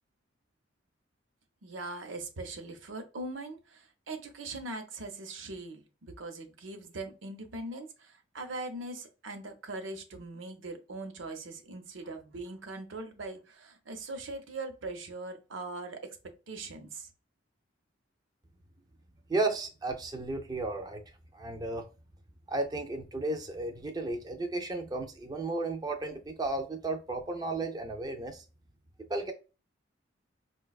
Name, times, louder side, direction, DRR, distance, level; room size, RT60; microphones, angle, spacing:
voice 1, 1.6-17.1, right 2 dB, 80° right, 0.7 m, -41 dB
voice 2, 19.3-21.0 21.3-21.9 22.5-28.4 29.1-29.3, right 2 dB, 20° right, 0.4 m, -33 dB
4.7 x 2.2 x 2.3 m
head